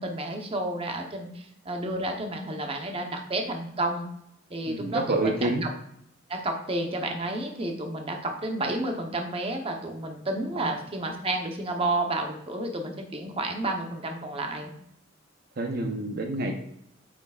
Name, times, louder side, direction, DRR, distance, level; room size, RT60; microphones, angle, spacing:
voice 1, 0.0-4.1 4.5-5.7 6.3-14.7, right 2 dB, 30° right, 3 dB, 0.9 m, -31 dB
voice 2, 4.7-5.6 10.6-10.7 15.6-16.5, right 2 dB, 50° right, 3 dB, 0.8 m, -28 dB
8.4 x 6.1 x 2.4 m, 0.73 s
head